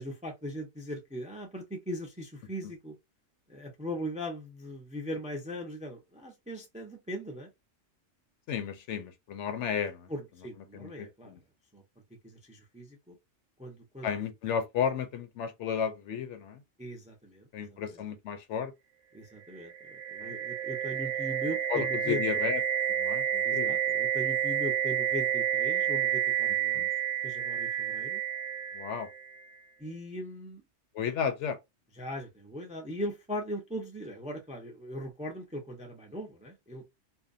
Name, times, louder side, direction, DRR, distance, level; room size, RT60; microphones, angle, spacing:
voice 1, 0.0-3.0 3.5-7.5 10.1-11.4 11.7-11.8 12.2-13.2 13.6-14.1 16.8-18.0 19.1-22.4 23.4-26.9 27.2-28.2 29.8-30.6 31.9-36.8, equal, 10° right, 0.4 m, -39 dB
voice 2, 8.5-10.1 10.7-11.4 14.0-16.6 17.5-18.7 20.2-20.3 21.7-22.6 23.0-23.8 26.7-26.9 28.7-29.1 30.9-31.6, left 7 dB, 70° left, 0.9 m, -33 dB
sound 1, 19.6-29.5, right 9 dB, 85° right, 1.0 m, -30 dB
2.6 x 2.2 x 2.4 m
omnidirectional pair, 1.3 m